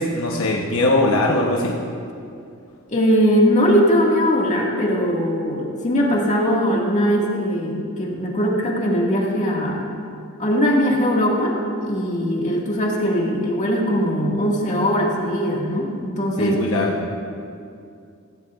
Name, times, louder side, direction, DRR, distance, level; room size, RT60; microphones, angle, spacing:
voice 1, 0.0-1.7 16.4-17.1, left 2 dB, 80° left, -1 dB, 1.1 m, -20 dB
voice 2, 2.9-9.9 10.4-11.6 11.9-16.6, equal, 35° left, -2 dB, 2.0 m, -20 dB
16.5 x 15.0 x 2.5 m, 2.4 s
head